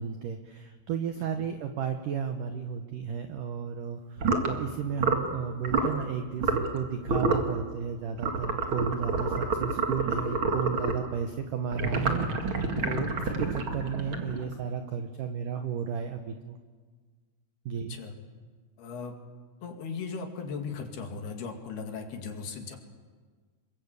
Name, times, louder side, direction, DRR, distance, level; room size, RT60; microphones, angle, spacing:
voice 1, 0.0-16.6 17.7-18.0, right 7 dB, 85° right, 7 dB, 1.8 m, -34 dB
sound 1, 4.2-4.5 5.0-5.3 5.6-5.9 6.4-6.8 7.1-7.5 8.2-11.1 11.7-14.5, right 3 dB, 55° right, 1.4 m, -28 dB
voice 2, 12.8-13.1 17.9-18.1 18.8-19.1 19.6-22.8, left 5 dB, 60° left, 4 dB, 3.9 m, -37 dB
27.5 x 22.5 x 8.3 m, 1.5 s
omnidirectional pair, 5.5 m